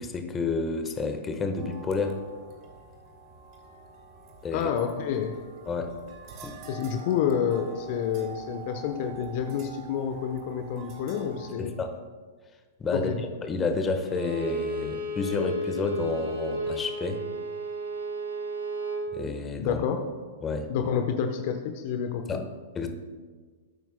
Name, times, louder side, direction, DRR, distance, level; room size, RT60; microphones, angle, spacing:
voice 1, 0.0-2.2 4.4-4.7 5.7-6.0 6.4-6.6 11.6-11.9 12.8-13.1 13.4-17.2 19.1-19.8 20.4-20.7 22.3-22.4 22.7-22.9, left 4 dB, 20° left, 6 dB, 1.3 m, -30 dB
sound 1, 1.6-11.5, right 5 dB, 40° right, 2.1 m, -46 dB
voice 2, 4.5-5.3 6.7-11.7 12.9-13.2 19.6-20.0 20.7-22.4, left 8 dB, 50° left, 6 dB, 0.9 m, -29 dB
Bowed string instrument, 14.0-19.1, right 1 dB, 85° right, 3.1 m, -33 dB
19.0 x 9.2 x 2.2 m, 1.5 s
figure-of-eight pair, 105°, 0 cm